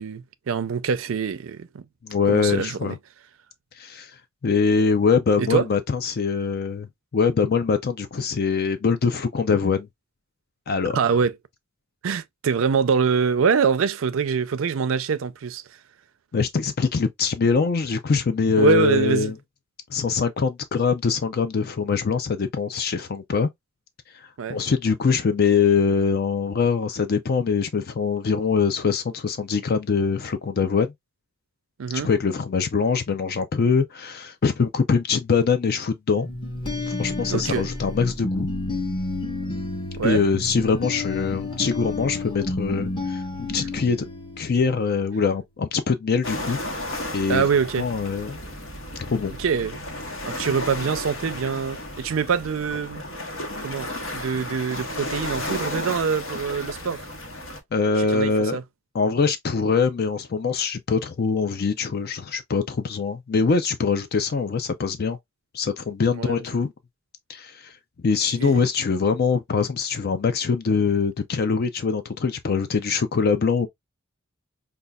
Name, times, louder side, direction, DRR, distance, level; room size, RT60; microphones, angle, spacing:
voice 1, 0.0-1.8 2.3-2.9 5.4-5.7 10.9-11.3 12.0-15.6 18.6-19.3 24.4-24.6 31.8-32.1 37.3-37.7 40.0-40.2 47.3-47.9 49.4-49.8 50.2-53.0 53.6-57.0 58.0-58.6 66.1-66.4 68.4-68.6, right 6 dB, 75° right, 0.4 m, -24 dB
voice 2, 2.0-3.0 3.8-4.1 4.4-6.9 7.1-9.9 10.7-11.0 16.3-19.3 19.9-23.5 24.5-30.9 32.0-36.3 36.9-38.5 40.0-44.0 44.4-46.6 47.1-47.4 47.8-48.4 49.0-49.3 57.7-58.6 58.9-65.2 65.5-66.7 67.3-67.7 68.0-73.7, left 5 dB, 50° left, 0.4 m, -23 dB
sound 1, 36.2-44.9, left 2 dB, 25° left, 0.9 m, -30 dB
sound 2, 46.2-57.6, left 1 dB, 75° left, 1.2 m, -33 dB
5.3 x 2.3 x 2.2 m
head